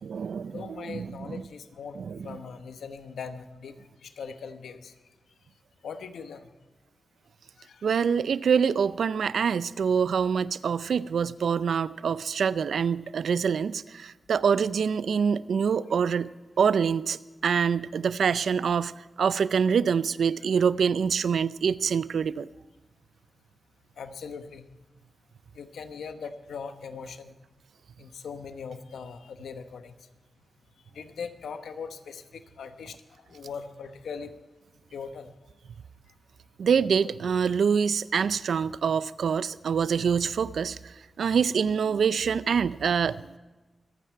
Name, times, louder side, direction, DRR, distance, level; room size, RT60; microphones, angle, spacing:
voice 1, 0.0-1.4 2.0-2.4 7.8-16.3 16.6-18.9 19.2-22.5 36.6-43.3, right 6 dB, 80° right, 17 dB, 0.4 m, -25 dB
voice 2, 0.5-3.7 4.0-4.9 5.8-6.5 7.6-7.9 24.0-24.6 25.5-27.3 28.0-29.9 30.9-33.0 33.3-34.3 34.9-35.3, left 6 dB, 90° left, 8 dB, 1.1 m, -40 dB
25.5 x 9.3 x 4.6 m, 1.2 s
cardioid pair, 50°, 0 cm